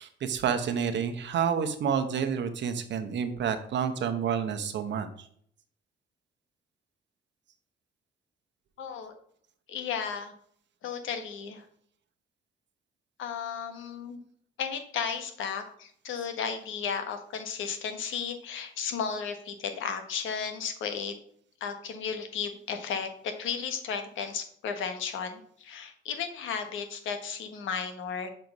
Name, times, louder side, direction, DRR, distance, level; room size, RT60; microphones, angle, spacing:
voice 1, 0.0-5.1, right 7 dB, 65° right, 8 dB, 1.1 m, -29 dB
voice 2, 8.8-9.1 9.7-10.3 10.8-11.6 13.2-14.2 14.6-21.1 21.6-28.3, left 6 dB, 80° left, 7 dB, 1.3 m, -34 dB
6.6 x 4.5 x 5.4 m, 0.64 s
cardioid pair, 90°, 20 cm